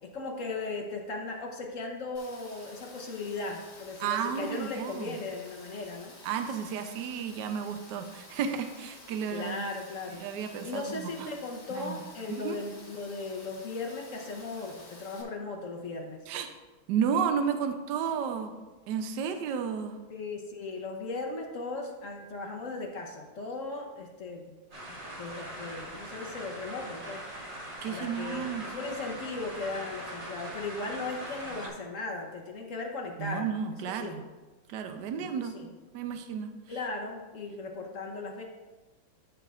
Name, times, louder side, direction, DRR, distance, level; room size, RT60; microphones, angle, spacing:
voice 1, 0.0-6.2 9.3-16.2 20.1-24.5 24.9-27.2 27.9-33.5 33.8-34.2 35.2-35.7 36.7-38.4, left 3 dB, 55° left, 1 dB, 1.0 m, -37 dB
Rain, 2.1-15.2, left 2 dB, 40° left, 1.4 m, -51 dB
voice 2, 4.0-5.1 6.2-9.6 10.2-11.3 11.7-12.0 12.3-12.6 16.3-16.5 16.9-18.5 18.9-20.0 27.8-28.6 33.2-34.2 34.7-35.5 35.9-36.5, right 7 dB, 70° right, 7 dB, 1.2 m, -32 dB
sound 1, 24.7-31.7, right 1 dB, 30° right, 1.5 m, -41 dB
13.5 x 5.7 x 2.4 m, 1.2 s
omnidirectional pair, 2.2 m